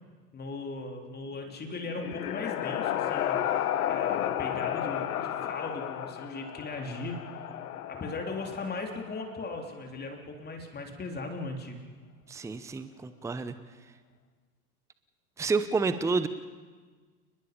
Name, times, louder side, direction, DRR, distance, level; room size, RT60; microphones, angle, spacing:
voice 1, 0.3-7.2 7.9-11.8, left 3 dB, 20° left, 3 dB, 3.2 m, -38 dB
sound 1, 1.6-9.4, left 11 dB, 70° left, 1.4 m, -33 dB
voice 2, 12.3-13.5 15.4-16.3, right 4 dB, 5° right, 12 dB, 0.8 m, -29 dB
29.5 x 21.0 x 5.2 m, 1.4 s
figure-of-eight pair, 95°, 47 cm